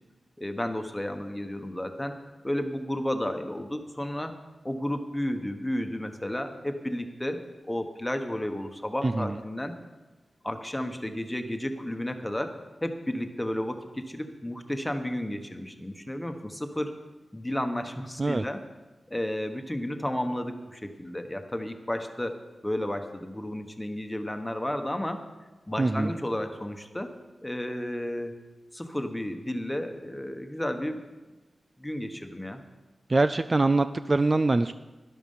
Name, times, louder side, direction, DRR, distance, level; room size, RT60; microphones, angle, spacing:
voice 1, 0.4-2.1 2.4-4.3 4.6-7.4 7.7-9.8 10.4-17.0 17.3-18.6 19.1-22.3 22.6-25.2 25.7-27.1 27.4-28.3 28.7-31.0 31.8-32.6, left 1 dB, 10° left, 6 dB, 1.3 m, -32 dB
voice 2, 9.0-9.4 18.2-18.5 25.8-26.2 33.1-34.7, right 2 dB, 35° right, 11 dB, 0.4 m, -24 dB
12.0 x 11.5 x 5.6 m, 1.2 s
wide cardioid pair, 80°, 0 cm